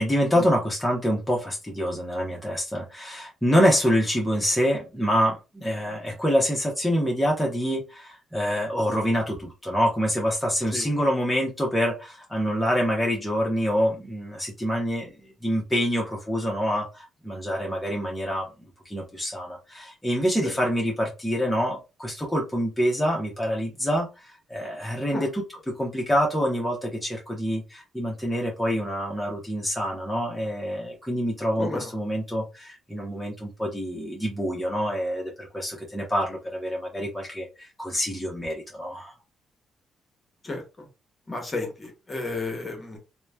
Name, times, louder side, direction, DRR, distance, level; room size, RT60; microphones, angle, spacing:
voice 1, 0.0-15.1 15.4-18.5 18.9-39.1, equal, 5° left, -3 dB, 0.7 m, -26 dB
voice 2, 31.6-31.9 40.4-40.9 41.3-43.0, left 2 dB, 25° left, 3 dB, 1.0 m, -32 dB
3.0 x 2.1 x 2.2 m, 0.28 s
cardioid pair, 90°, 0 cm